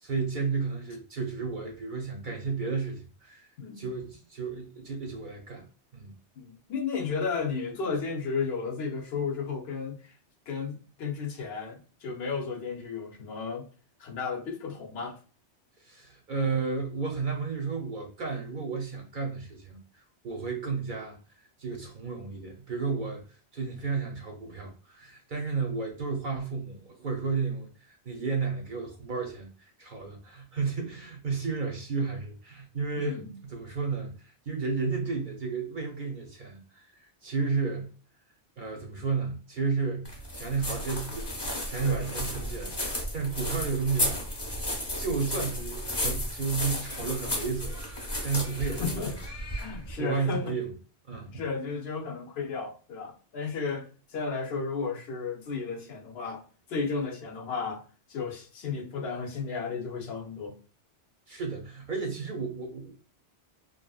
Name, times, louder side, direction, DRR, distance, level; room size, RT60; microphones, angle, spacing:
voice 1, 0.0-3.5 3.8-5.7 5.9-6.1 15.8-21.2 21.6-23.2 23.5-37.9 38.6-41.3 41.6-44.2 44.9-49.0 50.0-50.7 51.1-51.4 61.3-62.9, right 4 dB, 55° right, 0.7 m, -32 dB
voice 2, 6.4-10.2 10.5-13.7 14.0-15.2 33.0-33.3 41.8-42.0 48.8-49.1 49.6-50.6 51.3-56.4 56.7-57.8 58.1-60.6, left 5 dB, 70° left, 0.8 m, -33 dB
sound 1, 40.1-49.9, left 1 dB, 25° left, 0.8 m, -33 dB
2.9 x 2.5 x 2.2 m
omnidirectional pair, 1.2 m